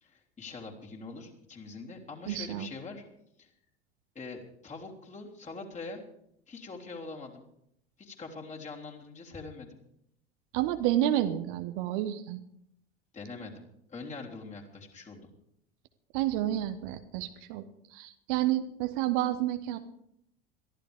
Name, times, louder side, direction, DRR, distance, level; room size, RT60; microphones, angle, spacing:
voice 1, 0.0-3.0 3.4-3.5 4.2-6.0 6.5-7.4 8.0-9.8 13.1-13.6 13.9-15.3, left 3 dB, 20° left, -1 dB, 3.5 m, -43 dB
voice 2, 2.3-2.7 10.5-12.4 16.1-19.8, right 13 dB, 50° right, 9 dB, 1.2 m, -30 dB
22.0 x 14.5 x 3.6 m, 0.74 s
figure-of-eight pair, 70°, 32 cm